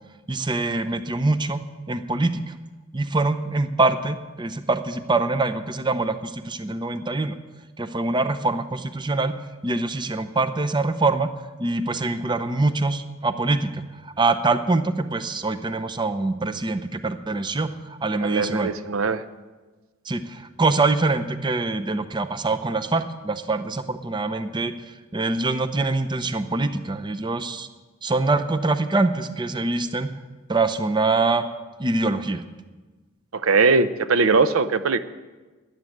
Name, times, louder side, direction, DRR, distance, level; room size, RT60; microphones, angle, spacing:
voice 1, 0.3-1.6 1.9-2.4 2.9-7.3 7.8-9.3 9.6-11.3 11.6-13.8 14.2-18.7 20.1-24.7 25.1-27.7 28.0-30.1 30.5-31.4 31.8-32.4, right 3 dB, 20° right, 10 dB, 0.7 m, -24 dB
voice 2, 18.2-19.2 33.3-35.0, right 4 dB, 75° right, 12 dB, 0.7 m, -20 dB
13.5 x 10.5 x 7.9 m, 1.3 s
head